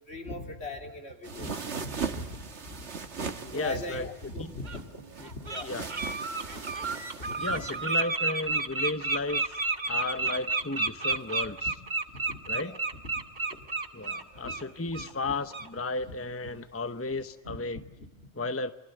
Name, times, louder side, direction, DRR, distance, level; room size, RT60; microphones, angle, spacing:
voice 1, 0.1-2.9 3.5-5.7 6.5-6.6 7.2-7.7 11.4-11.5 12.1-12.8 13.5-13.6 14.4-14.6 14.9-15.1 16.1-16.2 17.5-18.3, left 1 dB, 70° left, 3 dB, 3.6 m, -40 dB
sound 1, 1.2-7.9, right 5 dB, 90° right, 1.9 m, -39 dB
voice 2, 3.4-4.1 4.4-4.5 5.2-5.3 5.6-5.9 7.4-9.6 9.9-11.7 12.5-12.8 13.9-17.8 18.4-18.7, left 3 dB, 15° left, 10 dB, 0.9 m, -34 dB
Bird, 4.6-4.8 5.2-5.6 5.9-14.6 14.9-15.1 15.5-15.7, right 3 dB, 45° right, 1.6 m, -31 dB
28.5 x 24.5 x 7.9 m, 0.95 s
omnidirectional pair, 1.1 m